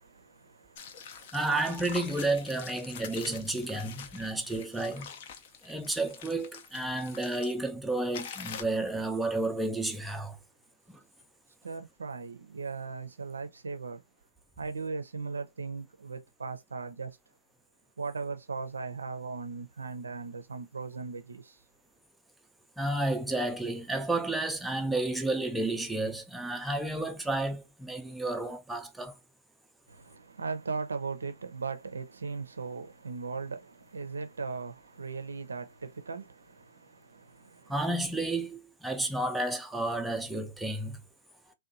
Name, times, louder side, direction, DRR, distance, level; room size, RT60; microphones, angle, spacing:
voice 1, 0.0-1.3 4.2-4.3 11.6-14.0 14.6-17.2 18.0-21.6 29.9-37.7, right 4 dB, 80° right, 0.5 m, -38 dB
sound 1, 0.7-7.5 8.1-8.6, left 7 dB, 50° left, 0.5 m, -45 dB
voice 2, 1.3-5.1 5.6-10.4 10.9-11.0 22.8-29.2 37.7-41.0, right 2 dB, 5° right, 0.4 m, -31 dB
2.7 x 2.2 x 2.5 m
hypercardioid pair, 125°, 0 cm